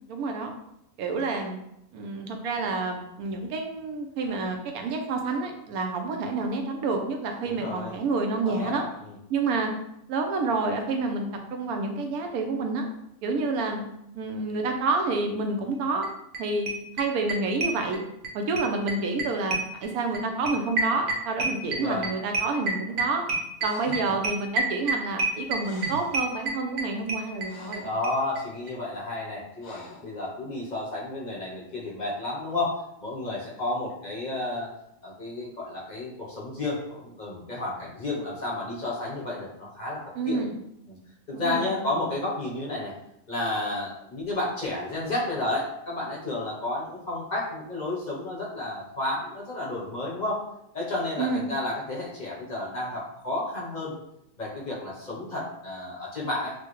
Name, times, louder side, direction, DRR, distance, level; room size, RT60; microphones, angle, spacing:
voice 1, 0.1-0.5 1.0-1.6 1.9-8.8 9.3-9.7 10.1-12.9 13.2-13.8 14.1-16.1 16.4-16.7 17.0-18.0 18.3-23.2 23.6-27.8 40.2-40.5 41.3-41.9 51.2-51.5, right 3 dB, 75° right, 3 dB, 1.0 m, -28 dB
voice 2, 7.4-7.9 8.4-9.2 21.7-22.1 27.8-34.7 35.0-40.0 40.3-40.5 40.9-41.0 41.3-42.9 43.3-50.4 50.7-54.0 54.4-56.5, left 2 dB, 40° left, -4 dB, 0.7 m, -31 dB
sound 1, 16.0-16.1 16.3-16.4 16.7-18.3 18.6-27.8 28.0-28.1 28.4-28.5 28.7-28.8, right 2 dB, 60° right, 0.7 m, -28 dB
Breathing, 23.6-24.1 25.3-25.4 25.6-26.3 27.0-28.0 29.6-30.1, equal, 70° left, 1.0 m, -44 dB
4.5 x 2.1 x 3.0 m, 0.80 s
omnidirectional pair, 1.6 m